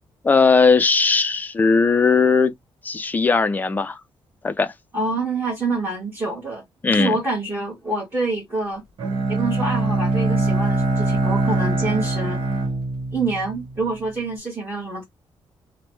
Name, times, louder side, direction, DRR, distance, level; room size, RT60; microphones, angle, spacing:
voice 1, 0.2-2.5 2.8-4.0 4.4-4.7 6.8-7.2, left 4 dB, 20° left, 0.4 m, -18 dB
voice 2, 4.9-6.6 6.9-8.8 9.3-12.4 13.1-15.0, right 2 dB, 20° right, 1.3 m, -26 dB
Bowed string instrument, 9.0-14.0, right 2 dB, 70° right, 1.2 m, -23 dB
3.0 x 2.1 x 3.0 m
wide cardioid pair, 145°, 9 cm